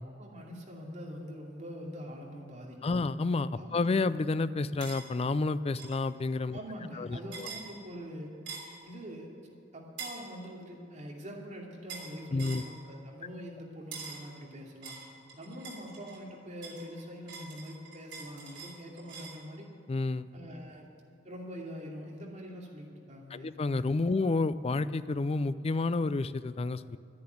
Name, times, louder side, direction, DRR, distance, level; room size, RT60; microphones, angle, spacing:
voice 1, 0.0-3.1 3.6-3.8 6.5-8.3 8.8-9.3 9.7-15.0 15.4-19.7 20.3-20.9 21.2-23.5 24.1-24.3, equal, 40° right, -2 dB, 2.7 m, -44 dB
voice 2, 2.8-6.6 7.0-7.5 12.3-12.6 19.9-20.3 23.3-27.0, left 3 dB, 35° left, 14 dB, 0.4 m, -30 dB
sound 1, 4.8-5.0 5.8-6.0 7.3-7.7 8.5-8.8 10.0-10.2 11.9-12.1 12.4-12.7 13.9-14.3 14.8-16.2 16.6-19.4, right 5 dB, 75° right, 3.3 m, -44 dB
12.0 x 10.5 x 9.2 m, 2.5 s
head